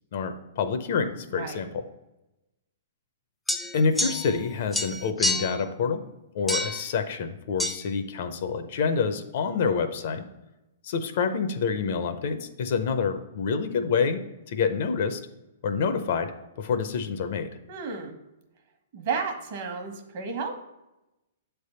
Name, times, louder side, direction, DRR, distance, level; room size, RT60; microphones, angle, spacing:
voice 1, 0.1-1.8 3.7-6.0 6.3-10.2 10.8-14.2 14.5-15.2 15.6-17.5, left 5 dB, 50° left, 8 dB, 0.6 m, -27 dB
sound 1, 3.5-4.5 4.7-5.6 6.5-6.9 7.6-7.8, left 1 dB, 5° left, 0.3 m, -28 dB
voice 2, 17.7-18.2 18.9-20.5, right 5 dB, 45° right, 4 dB, 1.1 m, -32 dB
7.6 x 3.4 x 5.5 m, 0.96 s
hypercardioid pair, 160°, 0 cm